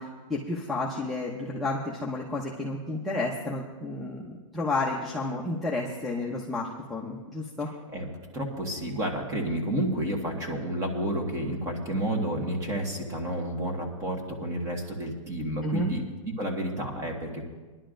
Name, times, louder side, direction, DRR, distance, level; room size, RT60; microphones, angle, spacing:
voice 1, 0.0-7.7 15.6-15.9, left 2 dB, ahead, -5 dB, 0.7 m, -31 dB
voice 2, 8.3-17.4, right 1 dB, 20° right, 2 dB, 1.5 m, -30 dB
21.0 x 11.0 x 2.6 m, 1.3 s
hypercardioid pair, 160°, 17 cm